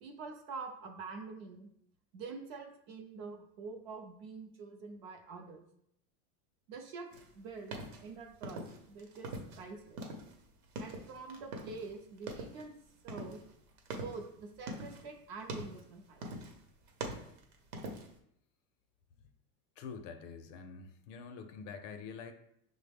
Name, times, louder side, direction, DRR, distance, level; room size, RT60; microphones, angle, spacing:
voice 1, 0.0-1.7 2.1-5.6 6.7-7.1 7.3-8.6 8.9-10.0 10.8-12.7 13.0-13.4 13.9-16.3, right 4 dB, 45° right, 5 dB, 0.4 m, -46 dB
sound 1, 7.1-9.6 9.9-11.9 12.2-12.7 13.1-15.1 15.4-15.9 16.2-16.6 16.9-18.2, right 2 dB, 75° right, 0.9 m, -43 dB
voice 2, 19.8-22.3, left 5 dB, 55° left, 7 dB, 0.5 m, -46 dB
6.0 x 2.1 x 3.3 m, 0.72 s
supercardioid pair, 165°, 45 cm